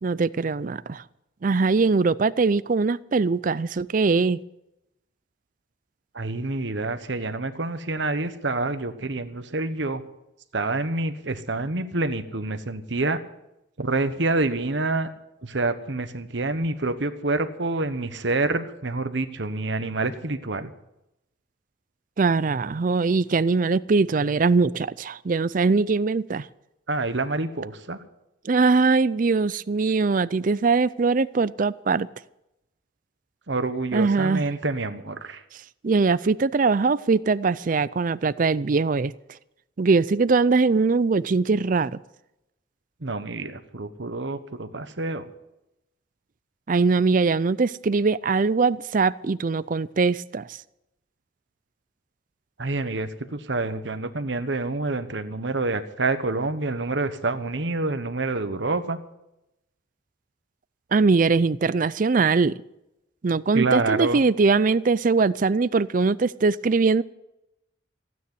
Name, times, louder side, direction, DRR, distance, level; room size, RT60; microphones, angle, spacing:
voice 1, 0.0-1.0 1.4-4.4 22.2-26.5 28.4-32.1 33.9-34.4 35.8-39.1 39.8-41.9 46.7-50.5 60.9-62.5 63.2-67.0, right 4 dB, 45° right, 0.4 m, -21 dB
voice 2, 6.1-10.0 10.5-13.2 13.8-15.1 15.4-20.7 26.9-28.0 33.5-35.4 43.0-45.3 52.6-59.0 63.5-64.2, right 2 dB, 65° right, 1.2 m, -27 dB
16.0 x 9.5 x 8.0 m
head